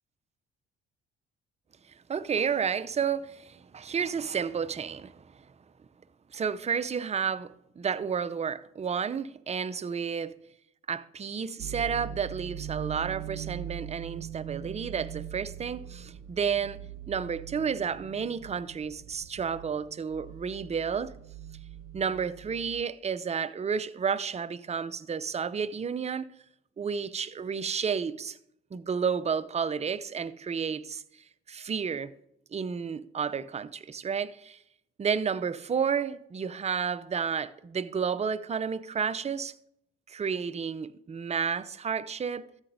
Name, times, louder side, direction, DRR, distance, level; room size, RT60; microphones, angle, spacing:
voice 1, 2.1-5.5 6.3-10.3 10.9-16.8 17.1-21.1 21.9-26.3 26.8-28.4 28.7-31.0 31.5-32.1 32.5-34.6 35.0-39.5 40.1-42.4, right 6 dB, 20° right, 0.5 m, -31 dB
sound 1, 11.6-22.8, right 10 dB, 55° right, 0.8 m, -42 dB
13.5 x 7.9 x 2.7 m
hypercardioid pair, 50°, 30 cm